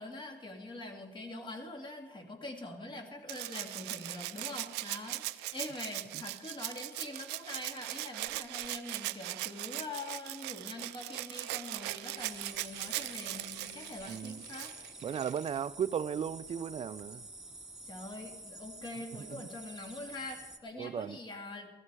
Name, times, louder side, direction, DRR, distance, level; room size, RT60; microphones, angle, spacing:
voice 1, 0.0-14.7 17.8-21.7, left 2 dB, 30° left, 2.5 m, -44 dB
Rattle (instrument), 3.3-15.6 17.0-17.1, right 18 dB, 90° right, 0.5 m, -40 dB
sound 1, 12.2-20.6, right 2 dB, 5° right, 1.5 m, -49 dB
voice 2, 14.1-14.4 15.0-17.2 19.3-19.5 20.8-21.2, right 8 dB, 35° right, 0.5 m, -36 dB
16.0 x 13.5 x 4.8 m
cardioid pair, 110°, 17 cm